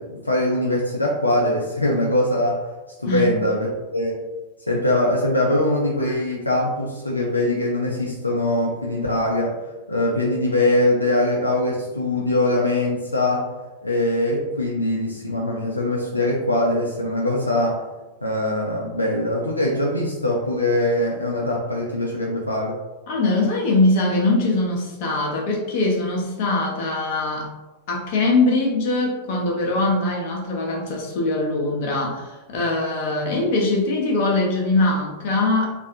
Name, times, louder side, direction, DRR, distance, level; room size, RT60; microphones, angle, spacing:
voice 1, 0.0-2.7 3.0-4.2 4.7-13.5 13.8-17.8 18.2-22.8, left 1 dB, 85° left, -3 dB, 0.4 m, -22 dB
voice 2, 23.1-27.5 27.9-35.7, left 2 dB, 50° left, -1 dB, 0.8 m, -22 dB
3.2 x 2.5 x 2.6 m, 1.1 s
figure-of-eight pair, 90°, 0 cm